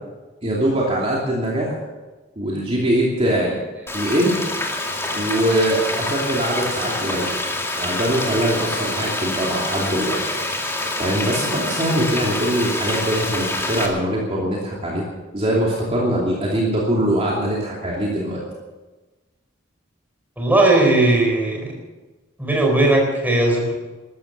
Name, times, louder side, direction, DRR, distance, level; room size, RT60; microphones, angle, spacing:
voice 1, 0.4-1.7 2.4-3.6 3.9-4.4 5.1-7.3 7.8-10.2 10.5-15.0 15.3-18.4, right 1 dB, 30° right, -4 dB, 2.7 m, -22 dB
Frying (food), 3.9-13.9, left 2 dB, 15° left, 2.2 m, -26 dB
voice 2, 20.4-21.8 22.4-23.7, right 2 dB, 10° right, 0 dB, 4.3 m, -17 dB
13.5 x 13.5 x 6.8 m, 1.2 s
head